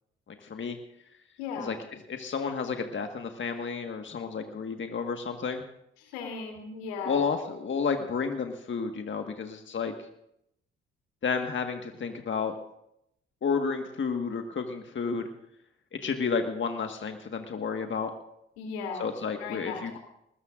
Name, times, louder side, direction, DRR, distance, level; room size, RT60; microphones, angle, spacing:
voice 1, 0.3-0.8 1.6-1.7 2.1-5.6 7.0-9.9 11.2-12.5 13.4-15.3 15.9-18.1 19.0-20.0, left 5 dB, 40° left, 5 dB, 1.6 m, -31 dB
voice 2, 1.4-1.7 6.0-7.2 18.6-19.1 19.4-20.0, left 5 dB, 80° left, 2 dB, 3.1 m, -36 dB
20.0 x 20.0 x 2.5 m, 0.79 s
hypercardioid pair, 50°, 30 cm